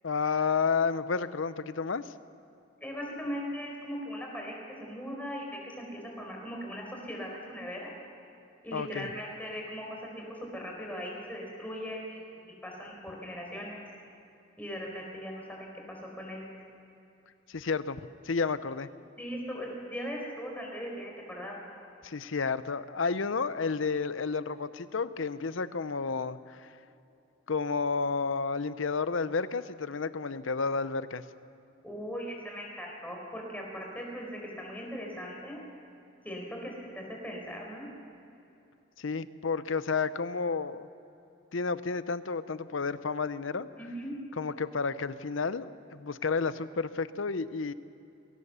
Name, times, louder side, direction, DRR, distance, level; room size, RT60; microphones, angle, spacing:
voice 1, 0.0-2.1 8.7-9.1 17.5-18.0 18.2-18.9 22.0-26.7 27.5-31.2 39.0-40.9 41.5-43.7 44.4-47.7, left 4 dB, 75° left, 14 dB, 0.7 m, -31 dB
voice 2, 2.8-4.5 4.8-7.9 8.6-10.2 10.5-13.8 14.6-16.5 19.2-21.6 31.8-35.6 36.2-37.9 43.8-44.1, equal, 10° left, -1 dB, 4.5 m, -39 dB
22.0 x 18.0 x 6.9 m, 2.8 s
head